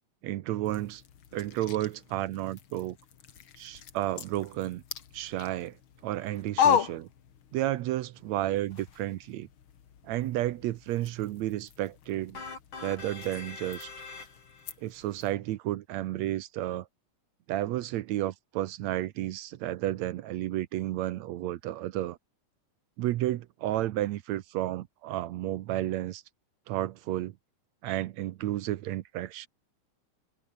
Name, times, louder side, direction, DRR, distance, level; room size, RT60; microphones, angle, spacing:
voice 1, 0.2-1.0 1.3-3.0 3.6-4.8 5.1-5.8 6.0-7.1 7.5-9.5 10.0-12.4 12.8-13.9 14.8-16.9 17.5-22.2 23.0-26.2 26.7-27.3 27.8-29.5, right 14 dB, 70° right, 1.9 m, -32 dB
sound 1, 0.6-7.8 8.1-15.3, left 8 dB, 50° left, 2.1 m, -36 dB
sound 2, 12.3-14.7, left 4 dB, 80° left, 7.7 m, -43 dB
omnidirectional pair, 3.5 m